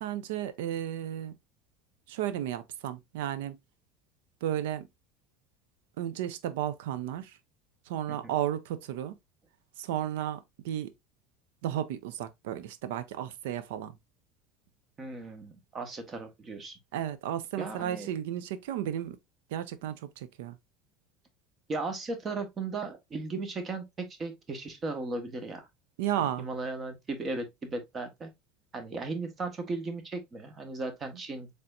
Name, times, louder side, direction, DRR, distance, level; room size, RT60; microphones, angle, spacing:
voice 1, 0.0-1.3 2.1-3.6 4.4-4.9 6.0-7.4 7.9-9.2 9.8-10.9 11.6-14.0 16.9-19.2 19.5-20.6 26.0-26.5, right 11 dB, 85° right, 0.5 m, -33 dB
voice 2, 15.0-16.8 17.6-18.1 21.7-25.7 26.2-28.3 28.7-31.5, right 3 dB, 30° right, 1.2 m, -36 dB
4.1 x 3.4 x 2.5 m
supercardioid pair, 110°, 0 cm